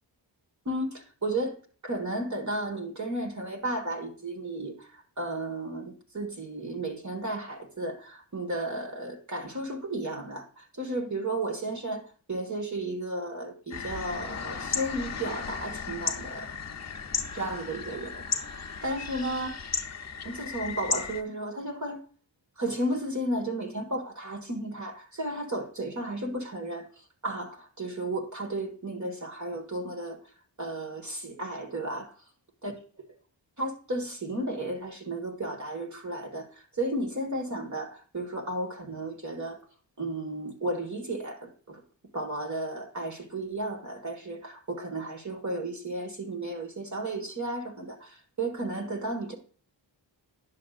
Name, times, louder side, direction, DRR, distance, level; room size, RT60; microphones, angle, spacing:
voice 1, 0.6-1.5 1.8-16.5 17.3-19.6 20.2-22.0 22.6-26.9 27.2-30.2 30.6-32.1 32.6-32.7 33.6-39.6 40.0-41.8 42.1-49.3, right 1 dB, 40° right, 1.6 m, -33 dB
sound 1, 13.7-21.2, left 5 dB, 35° left, 0.7 m, -35 dB
10.5 x 6.5 x 2.4 m
wide cardioid pair, 105°, 45 cm